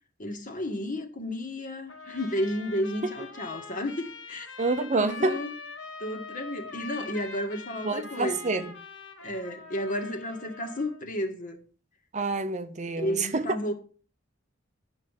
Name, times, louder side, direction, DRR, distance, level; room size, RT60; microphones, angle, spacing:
voice 1, 0.2-4.5 4.9-5.5 6.0-8.6 9.2-11.6 13.0-13.7, left 1 dB, 45° left, 1.9 m, -32 dB
Trumpet, 1.9-11.0, left 4 dB, 75° left, 2.2 m, -43 dB
voice 2, 4.6-5.4 7.8-8.7 12.1-13.4, right 3 dB, 40° right, 0.8 m, -27 dB
10.5 x 5.8 x 7.3 m
head